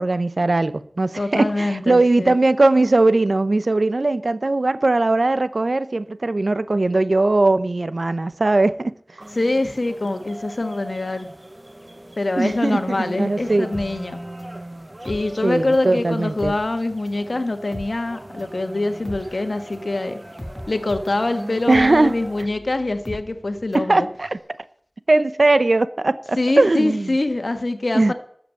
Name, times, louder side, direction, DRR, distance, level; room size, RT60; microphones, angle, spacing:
voice 1, 0.0-9.3 12.4-13.7 15.4-16.5 21.7-22.1 23.7-24.4 25.1-27.1 27.9-28.1, right 2 dB, 85° right, 0.8 m, -19 dB
voice 2, 1.2-2.3 9.3-11.3 12.2-14.2 15.1-20.2 20.7-24.1 26.4-28.1, left 2 dB, 85° left, 1.5 m, -24 dB
sound 1, 9.2-22.4, right 1 dB, 35° right, 0.9 m, -40 dB
sound 2, 13.7-15.9 16.2-23.9 24.2-24.3, equal, 20° left, 2.5 m, -39 dB
13.0 x 8.0 x 7.8 m
wide cardioid pair, 45°, 0 cm